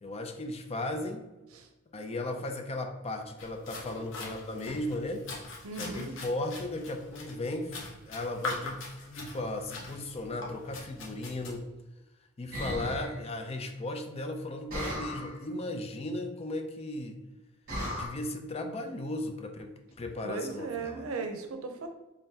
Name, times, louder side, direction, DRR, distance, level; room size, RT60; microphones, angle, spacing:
voice 1, 0.0-1.2 1.9-5.3 5.8-11.6 12.4-17.2 17.9-21.0, left 2 dB, 30° left, 5 dB, 0.4 m, -36 dB
sound 1, 3.4-11.5, left 2 dB, 65° left, 0.8 m, -42 dB
voice 2, 5.6-6.1 20.2-21.9, right 4 dB, 85° right, 5 dB, 0.6 m, -37 dB
sound 2, 12.5-13.2 14.7-15.4 17.7-18.1, equal, 45° right, 1.2 m, -35 dB
3.7 x 3.3 x 2.7 m, 1.0 s
head